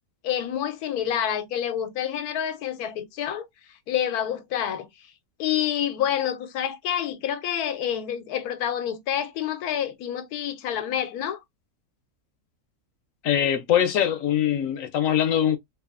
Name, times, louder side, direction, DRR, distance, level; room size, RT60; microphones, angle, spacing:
voice 1, 0.2-3.5 3.9-4.9 5.4-11.4, left 9 dB, 90° left, 1.1 m, -28 dB
voice 2, 13.2-15.6, left 10 dB, 70° left, 0.9 m, -22 dB
3.2 x 2.3 x 2.3 m
omnidirectional pair, 1.6 m